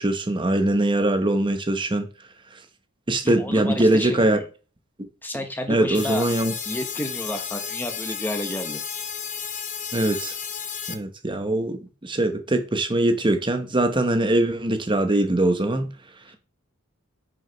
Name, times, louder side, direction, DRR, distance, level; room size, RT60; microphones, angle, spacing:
voice 1, 0.0-2.1 3.1-4.4 5.7-6.5 9.9-10.3 10.9-15.9, right 1 dB, 20° right, 0.9 m, -22 dB
voice 2, 3.2-4.5 5.2-6.2 6.6-8.8, left 1 dB, 10° left, 1.0 m, -30 dB
sound 1, 5.9-10.9, left 7 dB, 35° left, 0.9 m, -33 dB
6.2 x 4.9 x 5.1 m
head